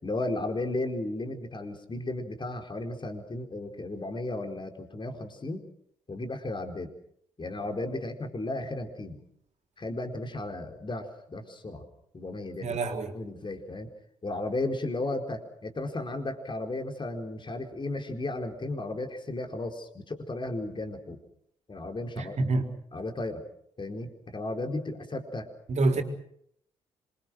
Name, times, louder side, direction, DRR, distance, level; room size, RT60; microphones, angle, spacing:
voice 1, 0.0-5.7 6.1-6.9 7.4-9.2 9.8-11.8 12.1-12.8 13.1-13.9 14.2-21.2 21.7-22.4 22.9-23.4 23.8-25.5, left 2 dB, 30° left, 5 dB, 4.5 m, -34 dB
voice 2, 12.6-13.1 22.2-22.7 25.7-26.0, right 2 dB, 50° right, 4 dB, 4.3 m, -27 dB
26.5 x 23.5 x 6.3 m, 0.70 s
hypercardioid pair, 45°, 15 cm